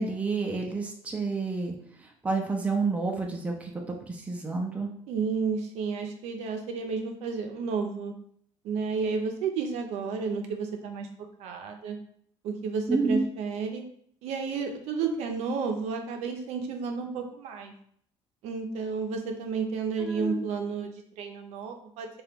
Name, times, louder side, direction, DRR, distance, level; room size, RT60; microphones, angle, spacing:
voice 1, 0.0-1.7 2.2-4.9 12.9-13.3 20.0-20.4, right 3 dB, 10° right, 1 dB, 0.4 m, -29 dB
voice 2, 5.1-8.1 8.6-11.1 11.4-12.0 12.4-13.8 14.2-17.7 18.4-22.1, right 5 dB, 70° right, 4 dB, 0.5 m, -31 dB
2.9 x 2.3 x 3.4 m, 0.64 s
cardioid pair, 140°, 11 cm